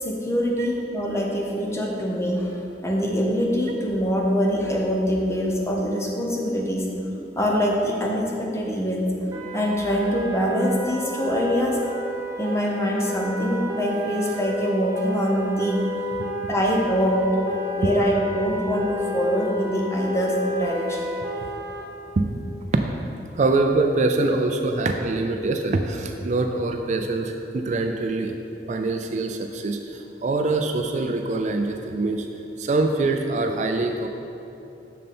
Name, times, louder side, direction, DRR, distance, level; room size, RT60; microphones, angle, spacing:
voice 1, 0.0-6.9 7.4-9.1 9.5-11.8 12.4-15.8 16.5-17.2 17.7-21.1, equal, 15° left, -1 dB, 0.9 m, -24 dB
sound 1, 9.3-21.8, left 1 dB, 20° right, 0.7 m, -31 dB
voice 2, 23.3-28.3 28.7-32.3 32.6-34.1, right 2 dB, 40° right, 4 dB, 0.4 m, -24 dB
6.7 x 6.5 x 4.3 m, 2.9 s
head